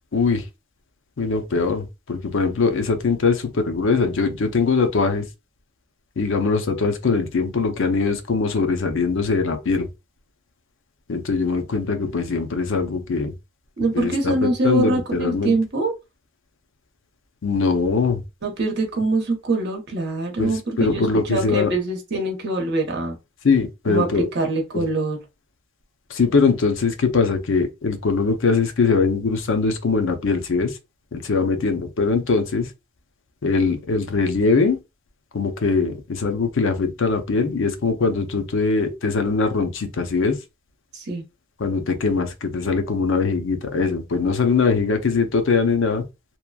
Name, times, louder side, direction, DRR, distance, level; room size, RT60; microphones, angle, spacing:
voice 1, 0.1-0.4 1.2-5.3 6.2-9.9 11.1-13.3 13.9-15.5 17.4-18.2 20.4-21.7 23.4-24.3 24.7-24.9 26.1-30.8 31.1-32.7 33.4-34.8 35.3-40.4 41.6-46.0, left 4 dB, 65° left, 0.5 m, -21 dB
voice 2, 13.8-15.9 18.4-23.2 23.9-25.2 40.9-41.2, right 2 dB, 55° right, 0.9 m, -24 dB
2.9 x 2.2 x 2.3 m
head